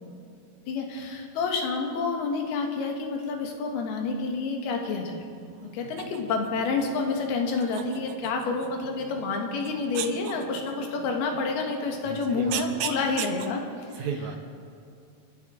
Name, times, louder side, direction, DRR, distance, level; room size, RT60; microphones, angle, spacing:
voice 1, 0.7-5.2 5.6-13.6 13.9-14.0, left 4 dB, 85° left, 2 dB, 3.5 m, -29 dB
sound 1, 5.2-13.5, right 10 dB, 80° right, 1.8 m, -40 dB
voice 2, 12.0-12.9 13.9-14.4, right 6 dB, 65° right, 2 dB, 2.2 m, -35 dB
29.0 x 11.0 x 3.8 m, 2.4 s
omnidirectional pair, 4.4 m